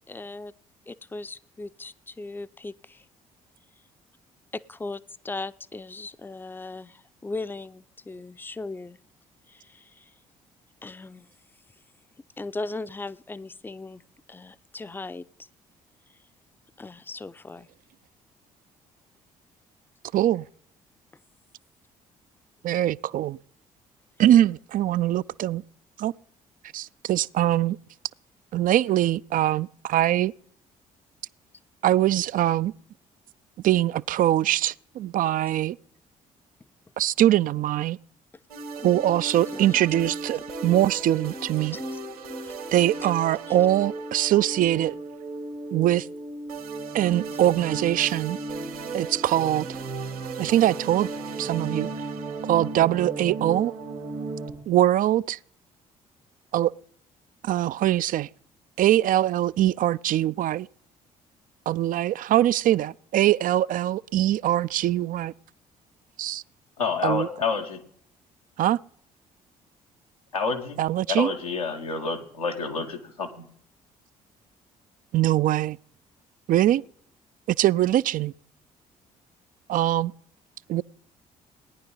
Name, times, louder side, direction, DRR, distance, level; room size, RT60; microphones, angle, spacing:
voice 1, 0.1-0.5 0.9-3.1 4.5-9.0 9.5-10.1 10.8-11.3 12.4-14.0 14.3-15.3 16.8-17.7 35.2-35.3 38.8-39.0 39.5-39.8 41.7-42.0 42.4-42.6 43.5-43.6, left 3 dB, 10° left, 0.5 m, -38 dB
voice 2, 20.1-20.4 22.6-23.4 24.2-25.6 26.0-26.1 26.7-27.8 28.5-30.3 31.8-32.7 33.6-35.8 37.0-38.0 38.8-41.8 42.7-45.0 45.7-46.1 46.9-48.4 48.9-49.7 50.4-51.1 51.4-51.9 52.5-53.7 54.7-55.4 56.5-56.7 57.4-58.3 58.8-60.7 61.7-65.3 66.2-66.4 67.0-67.3 68.6-68.8 70.8-71.3 75.1-75.8 76.5-76.8 77.5-78.3 79.7-80.1 80.7-80.8, right 13 dB, 50° right, 0.4 m, -22 dB
sound 1, 38.5-54.5, right 3 dB, 85° right, 2.3 m, -35 dB
voice 3, 66.8-67.8 70.3-73.5, left 5 dB, 90° left, 1.3 m, -29 dB
18.0 x 10.5 x 3.9 m
hypercardioid pair, 45°, 18 cm